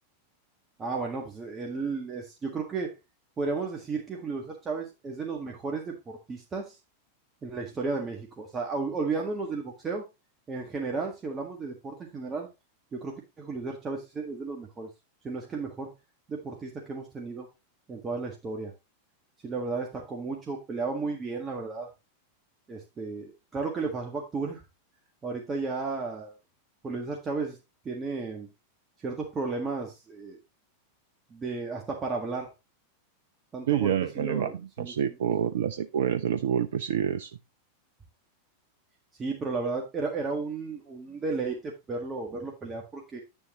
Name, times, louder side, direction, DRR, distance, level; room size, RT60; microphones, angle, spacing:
voice 1, 0.8-2.9 3.4-6.8 7.4-10.0 10.5-12.5 12.9-14.9 15.2-15.9 16.3-17.5 17.9-18.7 19.4-21.9 22.7-24.6 25.2-26.3 26.8-27.6 27.8-28.5 29.0-30.4 31.3-32.5 33.5-35.2 39.2-43.2, right 4 dB, 20° right, 0 dB, 1.7 m, -33 dB
voice 2, 33.7-34.5 34.8-37.3, right 9 dB, 60° right, 10 dB, 0.5 m, -27 dB
9.5 x 7.1 x 3.0 m, 0.24 s
figure-of-eight pair, 90°, 0 cm